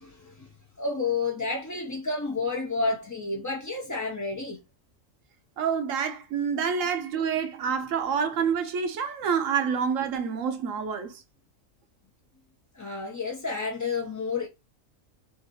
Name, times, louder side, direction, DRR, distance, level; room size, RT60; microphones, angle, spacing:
voice 1, 0.0-4.6 12.7-14.5, left 4 dB, 25° left, 0.3 m, -30 dB
voice 2, 5.6-11.2, right 6 dB, 80° right, 1.1 m, -27 dB
3.9 x 2.6 x 3.9 m
omnidirectional pair, 1.4 m